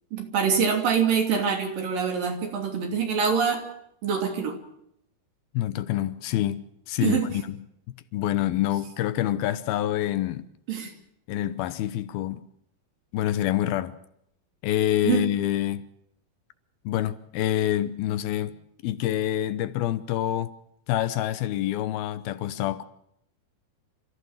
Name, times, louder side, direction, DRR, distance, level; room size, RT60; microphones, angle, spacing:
voice 1, 0.1-3.6 4.0-4.6 7.0-7.3 10.7-10.9 15.0-15.3, right 6 dB, 65° right, 4.6 m, -25 dB
voice 2, 5.5-7.6 8.1-10.5 11.3-12.5 13.1-14.0 14.6-15.9 16.9-18.6 18.8-20.5 20.9-22.8, left 12 dB, 80° left, 2.8 m, -27 dB
28.0 x 14.5 x 7.3 m
omnidirectional pair, 4.4 m